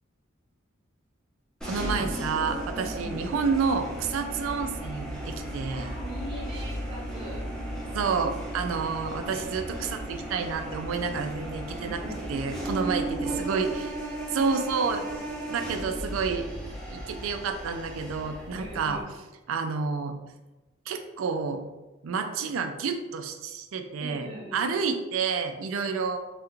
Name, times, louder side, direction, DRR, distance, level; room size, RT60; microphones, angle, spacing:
sound 1, 1.6-19.0, right 1 dB, 5° left, 0.7 m, -35 dB
voice 1, 1.6-5.9 7.9-12.0 12.3-13.9 14.3-15.0 15.5-16.5 16.9-19.0 19.5-20.2 20.9-21.6 22.0-26.2, right 5 dB, 75° right, 6 dB, 0.4 m, -29 dB
voice 2, 2.7-3.3 5.7-7.5 11.8-12.4 12.8-13.7 18.6-19.1 24.0-24.7, equal, 25° right, -4 dB, 0.9 m, -41 dB
3.3 x 2.4 x 3.0 m, 1.1 s
head